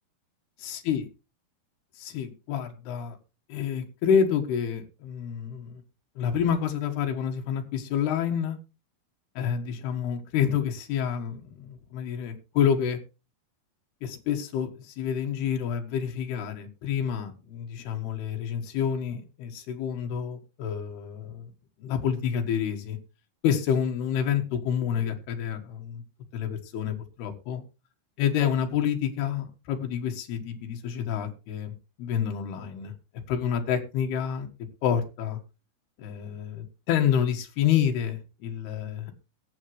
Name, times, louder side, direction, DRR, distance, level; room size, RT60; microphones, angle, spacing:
voice 1, 0.6-1.1 2.0-3.2 3.5-5.8 6.2-8.6 9.4-13.0 14.0-21.5 21.8-23.0 23.4-26.0 26.3-27.6 28.2-32.9 33.3-34.5 34.8-35.4 36.0-39.1, left 8 dB, 80° left, 4 dB, 3.7 m, -28 dB
20.5 x 8.1 x 3.1 m, 0.30 s
omnidirectional pair, 4.6 m